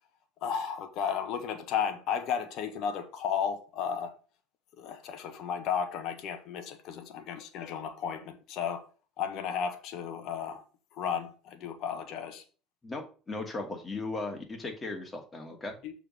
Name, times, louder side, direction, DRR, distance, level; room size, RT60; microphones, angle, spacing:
voice 1, 0.4-4.1 4.8-8.9 9.2-10.6 10.9-12.4 15.8-15.9, left 7 dB, 60° left, 1.2 m, -33 dB
voice 2, 12.8-15.8, left 2 dB, 25° left, 2.4 m, -37 dB
6.7 x 3.9 x 6.3 m
hypercardioid pair, 80°, 0 cm